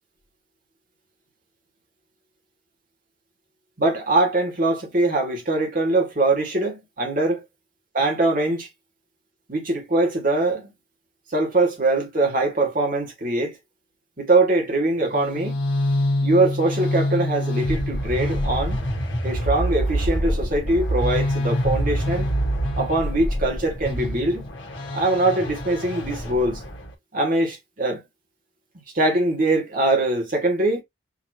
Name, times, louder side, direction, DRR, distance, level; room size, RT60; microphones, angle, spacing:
voice 1, 3.8-7.5 7.9-8.7 9.5-10.7 11.3-13.6 14.2-15.6 16.2-18.8 19.2-22.3 22.8-24.5 24.9-26.6 27.1-28.0 28.9-30.8, right 2 dB, 45° right, 1.9 m, -22 dB
sound 1, 15.1-26.9, equal, 65° left, 1.5 m, -25 dB
5.8 x 3.0 x 2.8 m
head